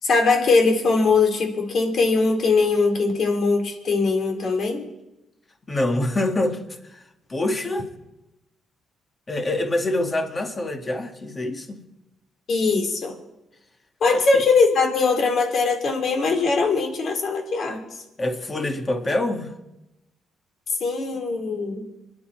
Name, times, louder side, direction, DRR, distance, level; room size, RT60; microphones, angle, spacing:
voice 1, 0.0-4.8 12.5-13.2 14.0-18.0 20.8-21.8, left 4 dB, 60° left, 3 dB, 3.6 m, -21 dB
voice 2, 5.7-6.6 6.9-7.0 7.3-7.9 9.3-11.8 14.1-14.4 18.2-19.5, left 1 dB, 30° left, 4 dB, 2.2 m, -25 dB
26.5 x 10.5 x 4.8 m, 0.95 s
cardioid pair, 90°, 0 cm